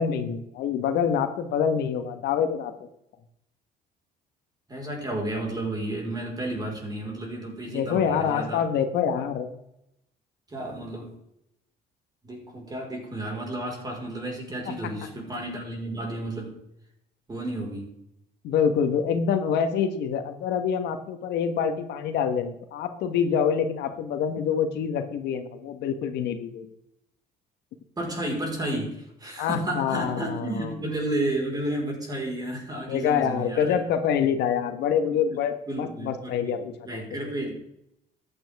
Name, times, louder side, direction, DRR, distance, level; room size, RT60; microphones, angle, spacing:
voice 1, 0.0-2.7 7.7-9.5 14.7-14.8 18.4-26.7 29.4-30.7 32.9-37.0, left 7 dB, 80° left, 7 dB, 1.4 m, -26 dB
voice 2, 4.7-8.7 10.5-11.2 12.2-16.6 17.3-17.9 28.0-33.8 35.1-35.3 35.7-37.5, right 1 dB, 25° right, 0 dB, 4.7 m, -32 dB
14.0 x 8.8 x 3.6 m, 0.80 s
cardioid pair, 110°, 17 cm